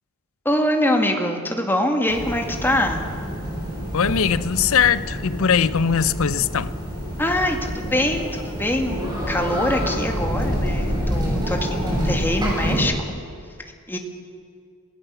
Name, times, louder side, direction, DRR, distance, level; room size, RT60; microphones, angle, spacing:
voice 1, 0.5-3.0 7.2-13.2 13.9-14.0, left 1 dB, 10° left, 2.1 m, -24 dB
sound 1, 2.1-12.8, equal, 20° right, 6.8 m, -27 dB
voice 2, 3.9-6.7, left 7 dB, 65° left, 0.6 m, -20 dB
26.5 x 18.0 x 7.0 m
head